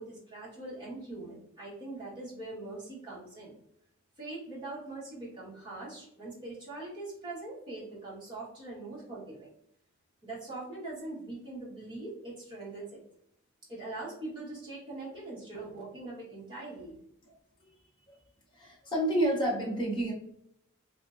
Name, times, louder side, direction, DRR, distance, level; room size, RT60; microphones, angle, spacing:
voice 1, 0.0-3.6 4.2-9.5 10.2-13.0 13.7-17.0, right 2 dB, 20° right, -7 dB, 1.3 m, -42 dB
voice 2, 18.5-20.1, right 1 dB, 20° left, -4 dB, 0.8 m, -29 dB
3.3 x 2.8 x 2.5 m, 0.73 s
head